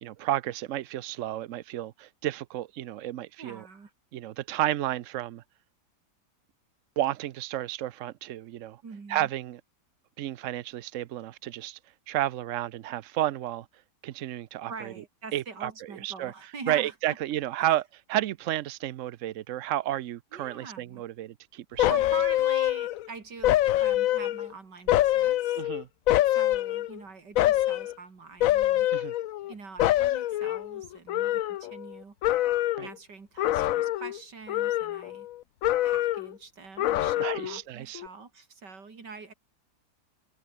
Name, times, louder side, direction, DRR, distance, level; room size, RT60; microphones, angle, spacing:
voice 1, 0.0-3.7 4.1-5.4 7.0-8.8 9.1-9.6 10.2-11.8 12.1-13.7 14.0-14.9 15.3-15.7 16.0-16.3 16.7-21.9 25.6-25.9 28.9-29.1 32.8-32.9 37.2-38.0, right 13 dB, 65° right, 0.8 m, -31 dB
voice 2, 3.4-3.9 8.8-9.3 14.7-17.2 17.6-17.7 20.3-21.0 21.9-25.6 26.2-28.9 29.5-32.2 32.8-35.3 35.8-39.3, right 4 dB, 85° right, 3.7 m, -44 dB
sound 1, 21.8-23.1 23.4-24.5 24.9-27.0 27.3-27.9 28.4-29.5 29.8-31.9 32.2-32.9 33.4-34.2 34.5-35.3 35.6-36.3 36.8-37.6 37.9-38.1, left 14 dB, 70° left, 0.9 m, -25 dB
omnidirectional pair, 1.8 m